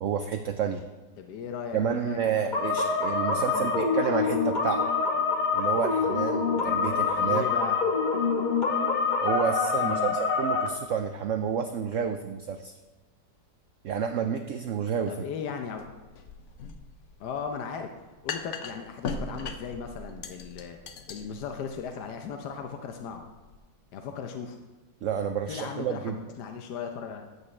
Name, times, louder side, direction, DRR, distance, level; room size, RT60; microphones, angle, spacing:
voice 1, 0.0-0.8 1.7-4.8 5.5-7.4 9.2-12.7 13.8-15.2 25.0-26.2, right 7 dB, 75° right, 7 dB, 0.7 m, -30 dB
voice 2, 1.2-2.8 3.3-3.7 7.2-7.8 9.8-10.2 15.1-15.8 17.2-17.9 18.2-20.8 21.1-23.3 23.9-24.6 25.5-27.3, left 6 dB, 75° left, 4 dB, 1.3 m, -37 dB
sound 1, 2.5-10.7, left 4 dB, 35° left, 0.9 m, -26 dB
sound 2, 15.8-23.6, left 4 dB, 55° left, 0.9 m, -40 dB
14.5 x 8.4 x 3.2 m, 1.2 s
omnidirectional pair, 1.8 m